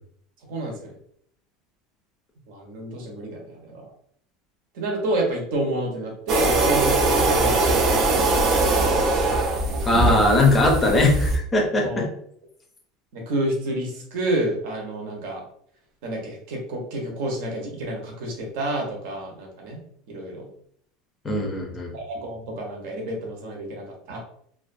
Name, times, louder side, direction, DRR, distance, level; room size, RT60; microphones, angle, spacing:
voice 1, 0.5-1.0 2.5-3.9 4.7-8.8 9.6-10.3 11.8-12.0 13.1-15.4 16.0-19.8 20.1-20.5 21.9-24.2, right 1 dB, 70° right, 0 dB, 0.8 m, -29 dB
sound 1, 6.3-11.4, right 2 dB, 35° right, 0.4 m, -21 dB
voice 2, 9.9-12.1 21.2-21.9, left 2 dB, 15° left, 0 dB, 0.5 m, -20 dB
2.4 x 2.2 x 2.5 m, 0.66 s
cardioid pair, 170°, 0 cm